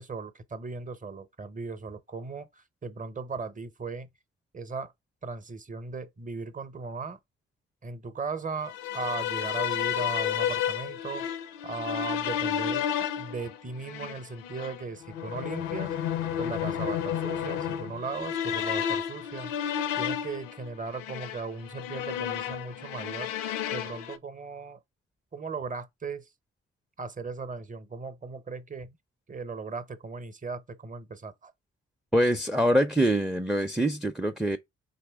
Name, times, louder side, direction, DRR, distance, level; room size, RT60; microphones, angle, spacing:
voice 1, 0.0-4.1 4.5-4.9 5.2-7.2 7.8-11.3 11.6-12.9 13.2-16.0 16.4-19.5 20.0-23.3 23.7-24.8 25.3-26.3 27.0-29.0 29.3-31.5, right 4 dB, 25° right, 0.8 m, -37 dB
sound 1, 8.6-24.2, left 9 dB, 85° left, 0.5 m, -32 dB
voice 2, 32.1-34.6, right 1 dB, ahead, 0.4 m, -24 dB
4.0 x 3.1 x 3.4 m
hypercardioid pair, 40°, 34 cm